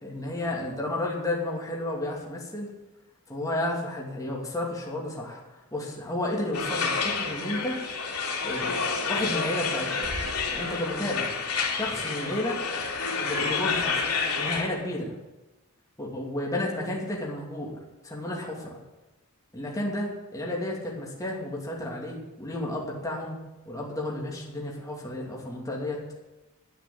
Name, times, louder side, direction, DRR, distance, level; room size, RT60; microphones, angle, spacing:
voice 1, 0.0-2.7 3.3-7.8 8.4-10.2 10.5-11.4 11.7-12.6 13.2-14.0 14.4-15.1 16.0-17.8 18.0-18.8 19.5-23.4 23.7-26.0, left 1 dB, 15° left, -3 dB, 2.6 m, -32 dB
sound 1, 6.5-14.6, left 5 dB, 85° left, 3.1 m, -29 dB
10.5 x 10.0 x 8.7 m, 1.1 s
head